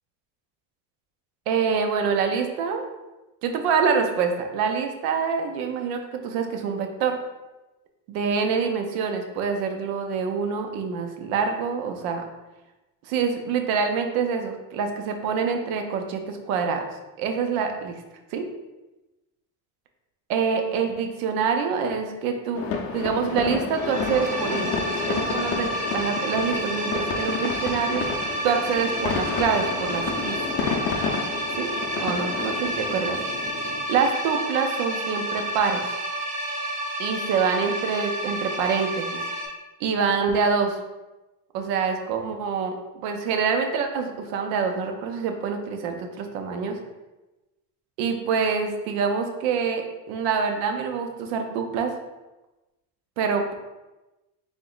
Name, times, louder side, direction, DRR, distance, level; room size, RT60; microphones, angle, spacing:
voice 1, 1.5-2.9 3.4-7.2 8.1-12.2 13.1-16.8 17.2-18.0 18.3-18.4 20.3-22.6 22.9-24.8 25.1-28.1 28.4-30.4 31.5-31.7 32.0-33.2 33.9-35.8 37.0-39.2 39.8-40.8 41.5-46.8 48.0-51.9 53.2-53.5, right 6 dB, 85° right, 5 dB, 0.7 m, -26 dB
sound 1, 22.5-33.8, left 5 dB, 40° left, 0.5 m, -30 dB
sound 2, 23.7-39.5, right 1 dB, 20° right, 0.5 m, -30 dB
3.6 x 2.9 x 3.9 m, 1.1 s
cardioid pair, 165°, 39 cm